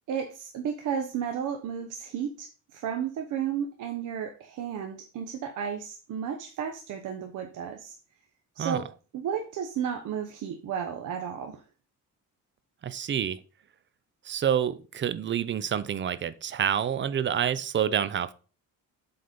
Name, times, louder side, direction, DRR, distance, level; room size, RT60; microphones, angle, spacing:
voice 1, 0.1-7.9 8.6-8.8 9.1-11.6, right 8 dB, 65° right, 5 dB, 1.0 m, -33 dB
voice 2, 12.8-13.4 14.2-18.3, right 9 dB, 35° right, 15 dB, 0.5 m, -28 dB
7.7 x 4.1 x 5.3 m, 0.37 s
cardioid pair, 145°, 32 cm